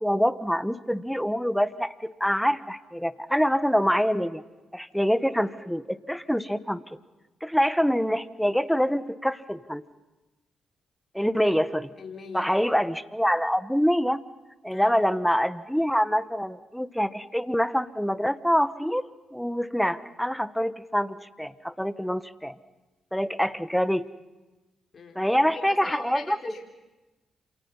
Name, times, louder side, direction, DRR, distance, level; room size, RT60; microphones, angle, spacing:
voice 1, 0.0-4.4 4.7-6.8 7.4-9.8 11.1-11.9 12.3-14.2 14.6-22.6 23.1-24.0 25.1-26.6, equal, ahead, 15 dB, 1.4 m, -25 dB
voice 2, 12.0-12.7 14.7-14.9 24.9-25.2 25.5-26.6, left 4 dB, 55° left, 3 dB, 4.7 m, -41 dB
28.5 x 27.5 x 5.7 m, 1.1 s
supercardioid pair, 50°, 0 cm